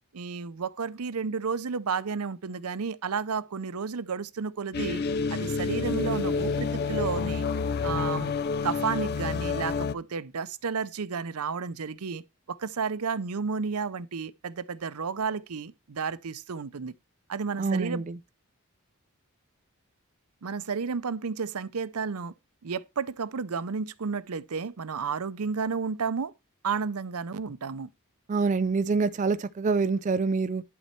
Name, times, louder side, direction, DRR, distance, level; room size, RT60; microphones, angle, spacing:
voice 1, 0.1-5.0 5.3-7.4 7.8-8.3 8.6-12.2 12.5-16.9 17.3-18.0 20.4-22.3 22.6-26.3 26.6-27.9, right 5 dB, 80° right, 0.6 m, -32 dB
sound 1, 4.7-9.9, left 5 dB, 45° left, 0.4 m, -29 dB
voice 2, 17.6-18.2 28.3-30.6, right 4 dB, 35° right, 0.3 m, -26 dB
11.0 x 4.3 x 4.4 m
head